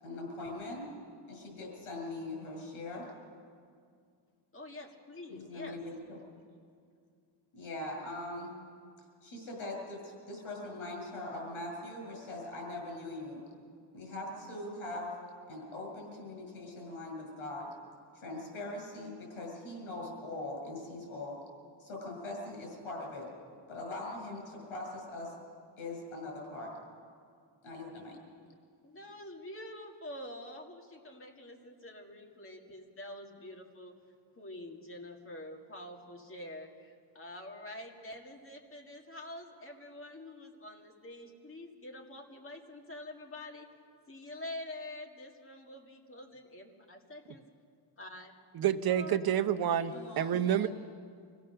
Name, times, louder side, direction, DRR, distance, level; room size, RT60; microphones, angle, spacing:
voice 1, 0.0-0.9 1.3-3.0 5.3-6.2 7.5-8.5 9.2-13.4 13.9-15.1 15.5-17.7 18.1-21.4 21.8-23.3 23.7-25.3 25.8-26.7 27.6-28.2 49.9-50.7, left 2 dB, 80° left, 0 dB, 7.8 m, -41 dB
voice 2, 4.5-5.8 28.8-34.0 34.4-43.7 44.1-47.4 48.0-48.3 48.9-49.2 49.8-50.1, left 1 dB, 25° left, 2 dB, 1.9 m, -46 dB
voice 3, 48.5-50.7, right 10 dB, 50° right, 9 dB, 0.8 m, -28 dB
25.5 x 16.5 x 6.7 m, 2.2 s
cardioid pair, 160°, 48 cm